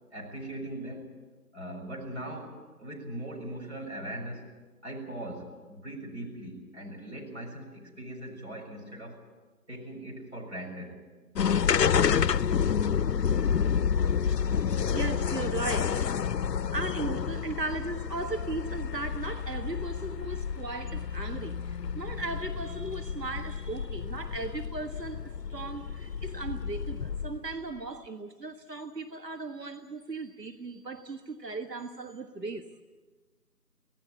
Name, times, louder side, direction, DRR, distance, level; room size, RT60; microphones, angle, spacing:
voice 1, 0.1-1.1 1.5-4.5 4.8-9.2 9.7-11.0 14.1-14.3, right 1 dB, 45° right, -1 dB, 6.4 m, -40 dB
sound 1, 11.3-27.5, left 7 dB, 85° left, 0.6 m, -29 dB
voice 2, 13.9-16.1 16.7-32.7, right 3 dB, 90° right, 7 dB, 1.5 m, -37 dB
25.5 x 17.5 x 8.3 m, 1.3 s
figure-of-eight pair, 175°, 48 cm